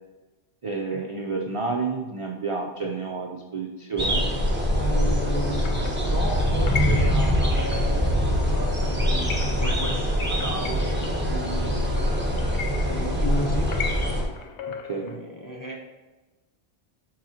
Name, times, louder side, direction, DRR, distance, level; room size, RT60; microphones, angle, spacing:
voice 1, 0.6-4.2 5.3-5.4 14.8-15.2, right 4 dB, 45° right, 0 dB, 0.4 m, -30 dB
sound 1, 4.0-14.2, equal, 10° right, 0.9 m, -23 dB
voice 2, 4.7-11.9 12.5-13.7 14.9-15.8, right 1 dB, 20° left, -2 dB, 0.6 m, -35 dB
sound 2, 5.4-15.2, left 6 dB, 80° left, 0.9 m, -38 dB
7.5 x 4.7 x 2.8 m, 1.2 s
omnidirectional pair, 1.2 m